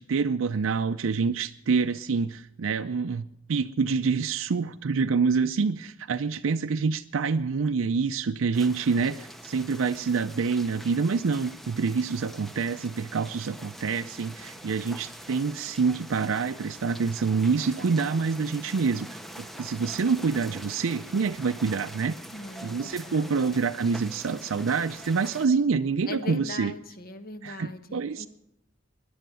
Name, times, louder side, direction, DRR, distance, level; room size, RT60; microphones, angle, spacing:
voice 1, 0.0-22.1 22.6-26.7 27.4-28.3, right 5 dB, 75° right, 7 dB, 0.5 m, -27 dB
sound 1, 8.5-25.5, equal, ahead, 0.7 m, -44 dB
voice 2, 22.3-23.4 26.1-28.3, left 2 dB, 50° left, 9 dB, 1.2 m, -40 dB
17.0 x 11.0 x 6.9 m, 0.82 s
head